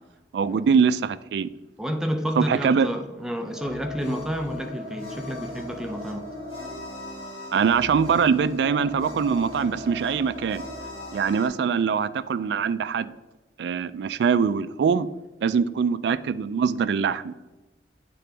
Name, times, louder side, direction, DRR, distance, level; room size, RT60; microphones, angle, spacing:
voice 1, 0.3-1.5 2.4-2.9 7.5-10.6 11.1-13.1 13.6-15.1 15.4-17.3, right 6 dB, 75° right, 15 dB, 0.3 m, -23 dB
voice 2, 1.8-6.3, equal, 5° right, 5 dB, 0.4 m, -30 dB
sound 1, 3.5-11.5, left 1 dB, 30° left, 2.2 m, -38 dB
9.2 x 3.8 x 3.4 m, 1.1 s
head